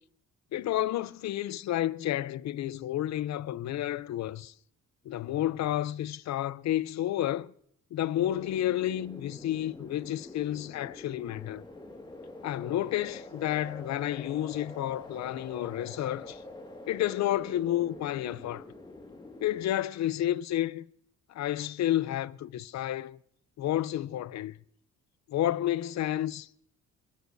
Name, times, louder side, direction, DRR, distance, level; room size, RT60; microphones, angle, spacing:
voice 1, 0.5-4.5 5.0-7.5 7.9-11.6 12.4-16.4 16.9-18.6 19.4-20.9 21.3-23.2 23.6-24.6 25.3-26.6, left 13 dB, 65° left, 0.6 m, -31 dB
sound 1, 8.1-19.7, left 2 dB, 15° left, 2.0 m, -46 dB
29.5 x 12.5 x 2.7 m
cardioid pair, 90°, 30 cm